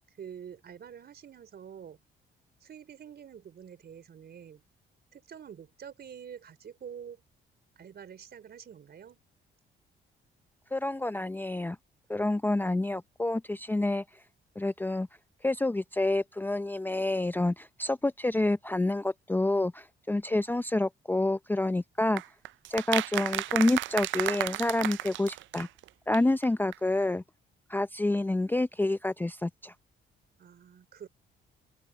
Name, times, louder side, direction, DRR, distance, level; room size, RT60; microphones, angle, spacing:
voice 1, 0.2-2.0 2.6-4.6 5.1-7.2 7.8-9.2 30.4-31.1, right 8 dB, 55° right, 4.5 m, -47 dB
voice 2, 10.7-11.8 12.1-14.0 14.6-15.1 15.4-22.2 22.7-25.7 26.1-27.2 27.7-29.7, left 2 dB, 10° left, 0.5 m, -28 dB
sound 1, 22.2-25.9 26.1-26.2 26.4-26.5 26.7-26.8, right 16 dB, 75° right, 0.4 m, -33 dB
open air
cardioid pair, 90°, 20 cm